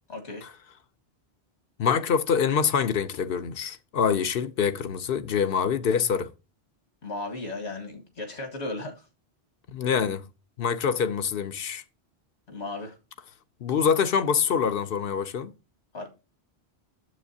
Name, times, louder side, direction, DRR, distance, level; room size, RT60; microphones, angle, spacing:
voice 1, 0.1-0.4 7.0-9.1 12.5-12.9 15.9-16.1, left 2 dB, 85° left, 2.0 m, -35 dB
voice 2, 1.8-6.3 9.7-10.2 10.6-11.8 13.6-15.5, left 7 dB, 60° left, 0.8 m, -25 dB
9.4 x 7.2 x 2.7 m
omnidirectional pair, 1.1 m